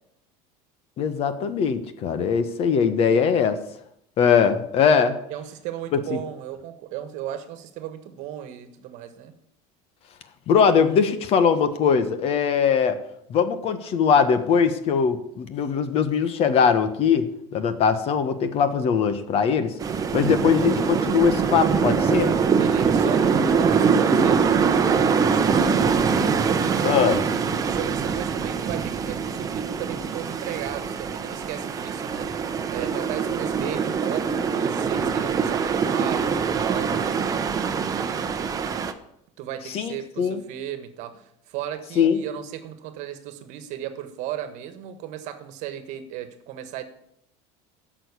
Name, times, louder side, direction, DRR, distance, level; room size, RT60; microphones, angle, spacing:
voice 1, 1.0-3.6 4.2-5.1 5.9-6.2 10.5-13.0 13.3-19.7 20.1-22.3 26.8-27.2 39.7-40.4 42.0-42.2, left 6 dB, 45° left, 10 dB, 1.3 m, -21 dB
voice 2, 5.3-9.3 22.6-25.8 26.7-27.2 27.7-36.9 37.5-38.4 39.4-46.8, right 11 dB, 60° right, 10 dB, 1.4 m, -35 dB
sound 1, 19.8-38.9, right 6 dB, 25° right, 0.9 m, -23 dB
13.5 x 6.4 x 8.2 m, 0.76 s
cardioid pair, 145°, 14 cm